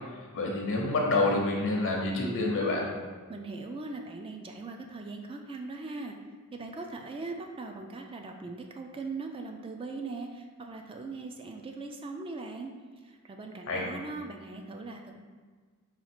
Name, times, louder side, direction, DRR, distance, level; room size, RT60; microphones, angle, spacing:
voice 1, 0.3-2.9 13.7-13.9, left 2 dB, 60° left, -1 dB, 0.7 m, -27 dB
voice 2, 3.3-6.1 6.5-12.7 13.2-15.2, right 3 dB, 25° right, 3 dB, 0.3 m, -40 dB
4.2 x 2.4 x 4.3 m, 1.5 s
head